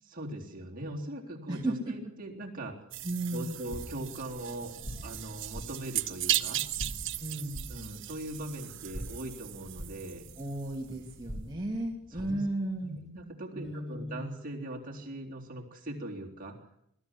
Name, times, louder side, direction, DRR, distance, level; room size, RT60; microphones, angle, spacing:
voice 1, 0.0-2.8 3.3-4.8 5.0-6.6 7.7-10.3 10.9-11.0 12.1-12.4 12.8-16.6, right 1 dB, 40° right, -1 dB, 3.8 m, -40 dB
voice 2, 1.5-1.9 3.0-3.6 7.2-7.6 10.4-13.0 13.5-14.3, right 1 dB, 20° right, -3 dB, 2.5 m, -34 dB
sound 1, 2.9-11.0, right 13 dB, 60° right, 1.1 m, -37 dB
sound 2, 3.6-12.5, equal, 35° left, 2.1 m, -45 dB
21.0 x 13.5 x 9.9 m, 0.73 s
head